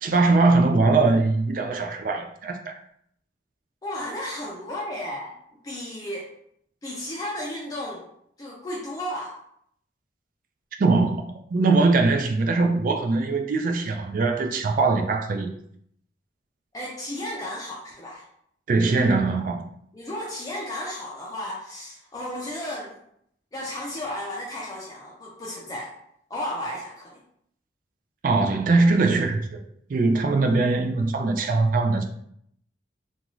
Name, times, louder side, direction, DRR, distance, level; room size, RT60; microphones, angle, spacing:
voice 1, 0.0-2.7 10.8-15.5 18.7-19.6 28.2-29.6 29.9-32.0, right 3 dB, 50° right, 0.3 m, -21 dB
voice 2, 3.8-5.3 5.6-6.3 6.8-8.0 8.4-9.4 16.7-18.2 19.9-23.0 23.5-25.9 26.3-27.2, left 1 dB, 20° left, 0.4 m, -33 dB
2.5 x 2.3 x 3.0 m
head